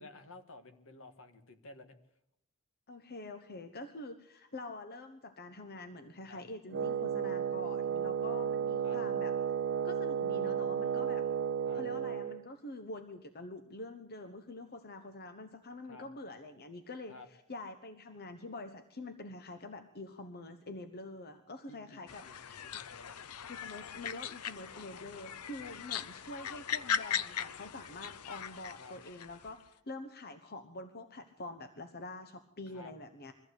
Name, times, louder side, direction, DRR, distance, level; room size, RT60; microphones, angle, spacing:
voice 1, 0.0-2.0 6.2-6.4 8.8-9.0 11.7-11.8 15.9-16.1 17.1-17.3 21.7-22.4 22.6-23.2 25.6-25.7 28.8-29.0 32.7-32.9, left 2 dB, 65° left, 7 dB, 1.8 m, -52 dB
voice 2, 2.9-9.4 9.8-11.3 11.7-22.6 23.5-33.3, left 2 dB, 45° left, 9 dB, 1.1 m, -46 dB
Wind instrument woodwind instrument, 6.7-12.4, right 8 dB, 50° right, 0.8 m, -33 dB
sound 1, 22.1-29.5, left 8 dB, 90° left, 0.7 m, -39 dB
22.5 x 14.5 x 8.2 m, 0.76 s
head